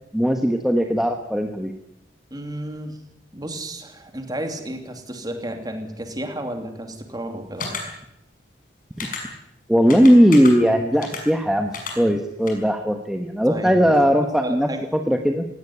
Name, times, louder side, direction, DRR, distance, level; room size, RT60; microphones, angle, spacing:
voice 1, 0.1-1.7 9.0-9.1 9.7-15.5, equal, ahead, 4 dB, 1.3 m, -18 dB
voice 2, 2.3-3.0 3.3-7.7 13.5-13.7 14.4-14.9, right 1 dB, 20° right, 5 dB, 3.0 m, -32 dB
sound 1, 7.6-7.8 9.0-9.2 9.9-10.5 11.0-11.2 11.7-11.9 12.5-12.6, left 5 dB, 45° left, 6.0 m, -31 dB
18.5 x 17.0 x 9.6 m, 0.80 s
head